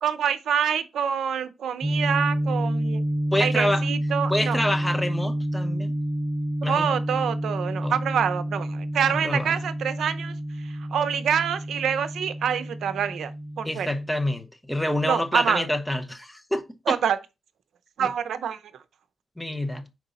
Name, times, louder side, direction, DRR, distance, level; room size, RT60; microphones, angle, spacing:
voice 1, 0.0-3.0 3.4-4.6 6.6-13.3 13.6-13.9 15.0-15.7 16.9-17.2 18.0-18.6, right 8 dB, 85° right, 0.6 m, -26 dB
sound 1, 1.8-14.1, right 1 dB, 35° right, 0.8 m, -29 dB
voice 2, 3.3-3.8 4.3-5.9 6.6-6.9 7.8-7.9 9.1-9.5 13.6-17.0 18.0-18.1 19.4-19.9, left 1 dB, 5° left, 0.9 m, -27 dB
5.2 x 4.7 x 4.0 m
cardioid pair, 85°, 0 cm